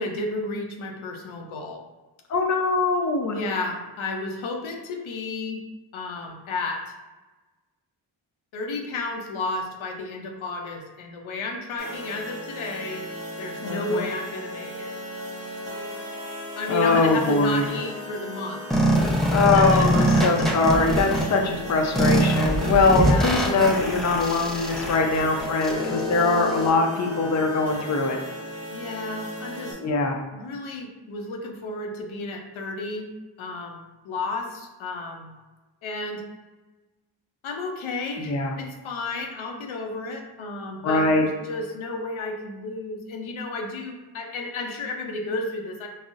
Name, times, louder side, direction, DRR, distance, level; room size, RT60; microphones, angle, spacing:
voice 1, 0.0-1.8 3.3-5.6 5.9-6.8 8.5-13.1 13.4-14.9 16.6-18.6 19.5-20.5 21.2-21.3 22.9-23.3 28.7-29.8 30.3-33.1 33.4-35.3 35.8-36.2 37.4-45.9, left 3 dB, 80° left, 2 dB, 0.6 m, -32 dB
voice 2, 2.3-3.4 13.6-14.1 16.7-17.6 19.3-28.2 29.8-30.1 38.2-38.5 40.8-41.2, left 3 dB, 35° left, 2 dB, 0.5 m, -22 dB
sound 1, 11.8-29.7, equal, 30° right, 1.1 m, -36 dB
sound 2, 18.7-21.2 22.0-26.7, equal, ahead, 0.7 m, -23 dB
3.8 x 2.0 x 2.4 m, 1.2 s
cardioid pair, 45°, 47 cm